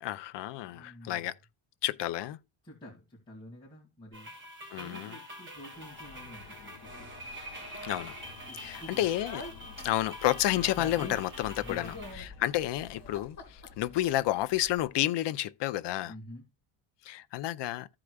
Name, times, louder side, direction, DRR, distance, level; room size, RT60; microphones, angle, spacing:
voice 1, 0.0-1.3 1.8-2.4 4.7-5.1 7.8-8.1 8.6-9.4 9.8-16.1 17.0-17.9, left 14 dB, 60° left, 0.6 m, -30 dB
voice 2, 0.7-1.3 2.6-4.3 4.8-7.1 8.5-9.0 9.6-9.8 11.5-12.2 16.0-16.4, left 1 dB, 10° left, 2.2 m, -49 dB
sound 1, 4.1-12.1, right 1 dB, 25° right, 3.1 m, -45 dB
sound 2, 5.7-13.2, left 7 dB, 85° left, 1.1 m, -54 dB
Speech, 8.8-14.9, left 3 dB, 35° left, 2.6 m, -45 dB
15.0 x 4.9 x 2.3 m
cardioid pair, 175°, 49 cm